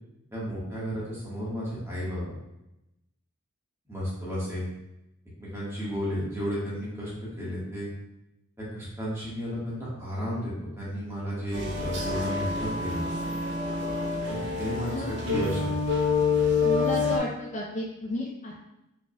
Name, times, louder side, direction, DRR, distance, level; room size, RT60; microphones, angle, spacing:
voice 1, 0.3-2.4 3.9-4.7 5.4-7.1 7.4-7.9 8.6-13.0 14.3-15.8, equal, 15° right, -8 dB, 1.4 m, -33 dB
sound 1, 11.5-17.2, left 4 dB, 55° right, 0.6 m, -27 dB
voice 2, 16.6-18.7, left 1 dB, 35° left, -3 dB, 0.5 m, -33 dB
4.8 x 3.4 x 2.2 m, 0.90 s
head